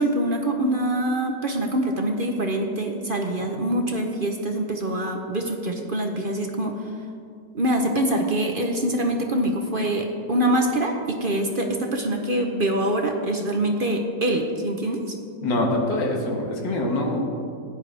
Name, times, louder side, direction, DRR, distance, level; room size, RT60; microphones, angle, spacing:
voice 1, 0.0-6.7 7.5-15.0, right 1 dB, 45° right, 2 dB, 0.8 m, -24 dB
voice 2, 15.4-17.2, left 1 dB, 90° left, 0 dB, 2.2 m, -24 dB
16.0 x 10.5 x 3.4 m, 2.3 s
omnidirectional pair, 1.9 m